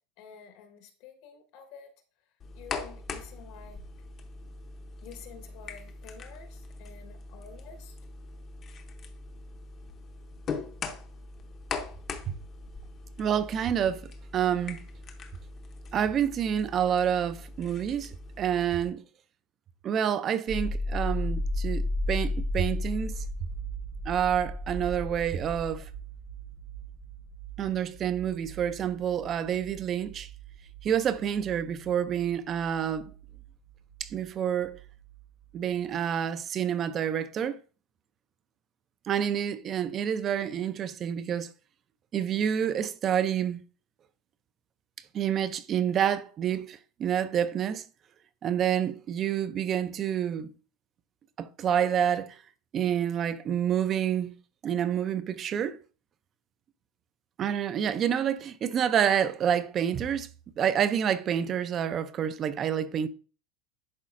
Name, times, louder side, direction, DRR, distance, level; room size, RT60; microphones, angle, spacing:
voice 1, 0.2-1.9 2.5-3.8 5.0-8.0, left 7 dB, 60° left, 1.3 m, -49 dB
sound 1, 2.4-18.9, left 4 dB, 30° left, 0.7 m, -41 dB
voice 2, 13.2-14.0 14.3-14.8 15.9-19.0 19.8-23.2 24.1-25.9 27.6-30.3 30.8-33.1 34.0-34.8 35.5-37.6 39.1-41.5 42.1-43.6 45.1-47.8 48.4-50.5 51.4-52.4 52.7-54.3 54.6-55.8 57.4-60.3 60.6-63.1, right 9 dB, 30° right, 0.4 m, -28 dB
sound 2, 20.5-34.3 34.6-35.5, left 1 dB, 85° right, 1.4 m, -35 dB
10.5 x 4.1 x 2.5 m
supercardioid pair, 140°, 0 cm